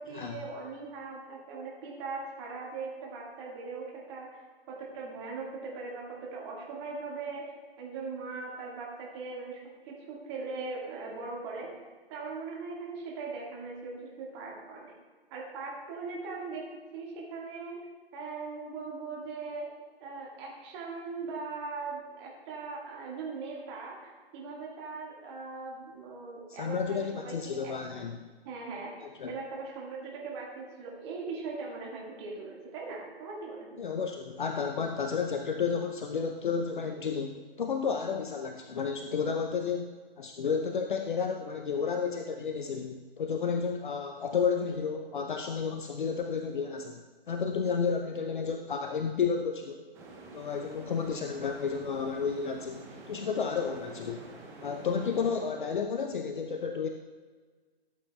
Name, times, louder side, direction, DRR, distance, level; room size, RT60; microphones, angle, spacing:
voice 1, 0.0-4.4 4.7-11.7 12.1-14.9 15.3-16.6 16.9-17.8 18.1-19.7 20.0-27.7 28.5-28.9 29.3-33.7, right 4 dB, 25° right, -2 dB, 1.8 m, -40 dB
voice 2, 26.5-28.2 29.0-29.3 33.8-49.8 50.3-54.2 54.6-56.9, left 6 dB, 55° left, 5 dB, 0.6 m, -32 dB
sound 1, 49.9-55.4, right 3 dB, 10° right, 0.8 m, -48 dB
13.0 x 8.0 x 2.3 m, 1.4 s
figure-of-eight pair, 135°, 31 cm